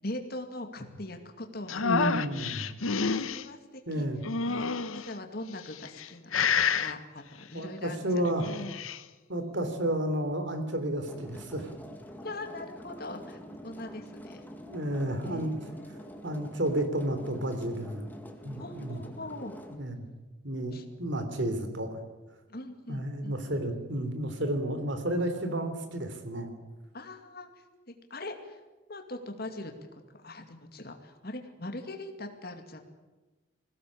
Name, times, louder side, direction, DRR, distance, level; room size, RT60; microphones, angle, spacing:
voice 1, 0.0-1.8 2.9-4.1 4.4-4.7 4.9-8.2 12.2-14.4 15.2-16.0 18.6-19.5 20.7-20.8 22.5-23.3 26.9-28.6 28.9-32.8, left 2 dB, 50° left, 5 dB, 2.4 m, -41 dB
sound 1, 1.7-3.4 4.2-5.1 5.7-6.1 6.3-6.9 8.3-9.0, left 5 dB, 90° left, 1.1 m, -28 dB
voice 2, 1.8-2.7 3.9-4.2 7.5-8.5 9.3-11.7 14.7-15.5 16.2-18.1 18.4-19.0 19.8-20.0 20.4-22.0 22.9-26.5, right 1 dB, 60° right, 8 dB, 3.4 m, -31 dB
sound 2, 11.1-19.8, equal, 10° left, 2.0 m, -46 dB
21.0 x 17.0 x 8.7 m, 1.2 s
head